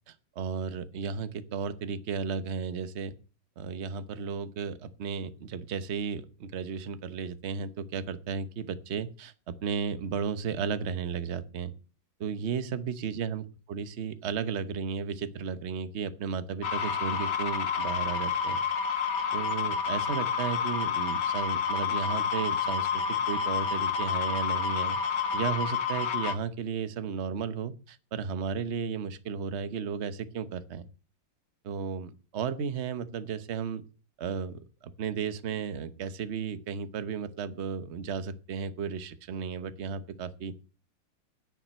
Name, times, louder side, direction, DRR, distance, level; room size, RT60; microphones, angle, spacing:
voice 1, 0.1-3.1 3.6-11.7 12.2-18.6 19.3-25.0 25.3-30.8 31.6-33.8 34.2-40.5, right 6 dB, 45° right, 13 dB, 1.1 m, -34 dB
sound 1, 16.6-26.4, left 6 dB, 65° left, 2.0 m, -29 dB
10.0 x 7.3 x 9.3 m, 0.36 s
omnidirectional pair, 2.0 m